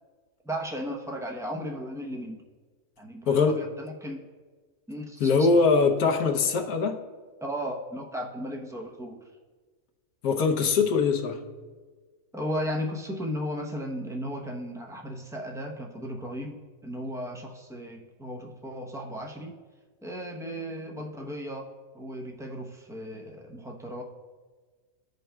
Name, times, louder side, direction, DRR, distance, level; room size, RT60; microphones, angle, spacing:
voice 1, 0.4-2.4 3.0-4.2 4.9-5.5 7.4-9.3 12.3-19.6 20.0-24.0, equal, 5° right, 0 dB, 0.4 m, -35 dB
voice 2, 5.2-7.0 10.2-11.4, left 4 dB, 80° left, 4 dB, 1.3 m, -22 dB
15.0 x 5.3 x 2.3 m, 1.4 s
omnidirectional pair, 1.5 m